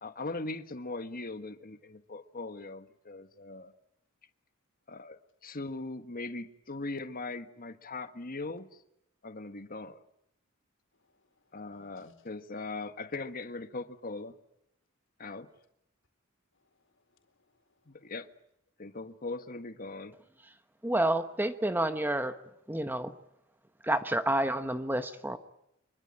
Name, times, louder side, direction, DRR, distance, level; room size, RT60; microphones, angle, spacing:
voice 1, 0.0-3.7 4.9-8.8 9.2-10.0 11.5-14.4 15.2-15.5 17.9-18.3 18.8-20.2, left 3 dB, 40° left, 1.5 m, -40 dB
voice 2, 11.1-12.1 16.6-17.2 17.5-17.9, left 3 dB, 60° left, 4.3 m, -66 dB
voice 3, 20.8-22.3 22.7-23.1 23.8-25.4, right 1 dB, 10° right, 1.1 m, -29 dB
25.0 x 24.0 x 8.7 m
head